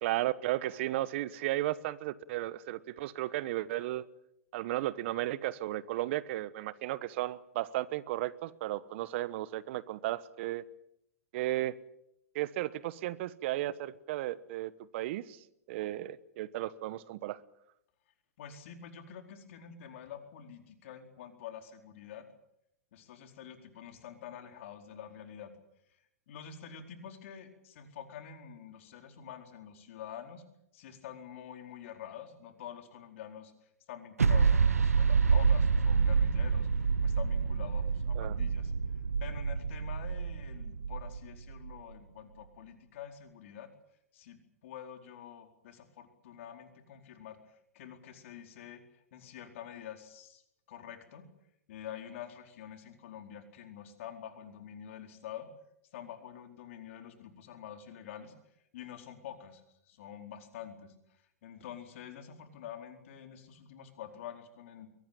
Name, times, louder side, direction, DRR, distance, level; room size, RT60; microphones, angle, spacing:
voice 1, 0.0-4.0 4.5-10.6 11.3-11.8 12.3-15.4 15.7-17.4 38.1-38.4, right 15 dB, 55° right, 18 dB, 1.2 m, -34 dB
voice 2, 18.4-22.2 22.9-25.5 25.9-30.4 30.7-38.7 39.2-43.7 44.1-44.4 44.6-50.4 50.7-51.2 51.7-55.5 55.9-58.3 58.7-64.9, left 9 dB, 60° left, 5 dB, 4.5 m, -47 dB
sound 1, 34.2-41.7, right 5 dB, 90° right, 1.1 m, -27 dB
23.0 x 18.5 x 9.0 m, 0.80 s
hypercardioid pair, 110°, 8 cm